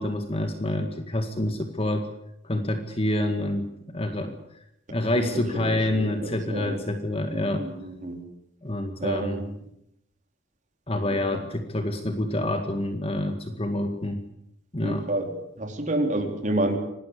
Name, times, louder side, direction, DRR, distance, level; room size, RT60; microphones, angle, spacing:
voice 1, 0.0-2.1 2.4-4.4 4.9-7.7 8.6-9.4 10.9-14.2 14.7-15.1, left 1 dB, 30° left, 7 dB, 1.9 m, -27 dB
voice 2, 5.2-6.8 7.3-8.2 9.0-9.5 11.1-11.2 14.8-15.3 15.6-16.8, right 1 dB, 40° right, 3 dB, 4.2 m, -29 dB
26.0 x 19.0 x 8.5 m, 0.80 s
head